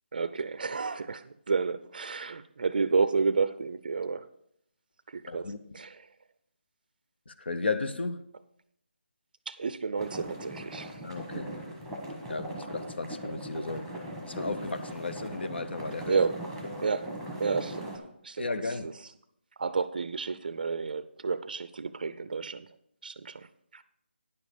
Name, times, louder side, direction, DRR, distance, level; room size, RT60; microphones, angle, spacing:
voice 1, 0.1-4.3 5.1-6.1 9.5-11.0 16.1-16.4 16.8-18.9 19.6-22.7 23.0-23.8, right 4 dB, 50° right, 0.4 m, -31 dB
voice 2, 5.3-5.6 7.3-8.2 11.0-11.5 12.3-13.9 14.2-16.1 18.4-18.9, left 3 dB, 70° left, 0.9 m, -34 dB
sound 1, 10.0-18.0, right 1 dB, 5° left, 1.2 m, -39 dB
9.7 x 7.1 x 5.1 m
figure-of-eight pair, 165°, 6 cm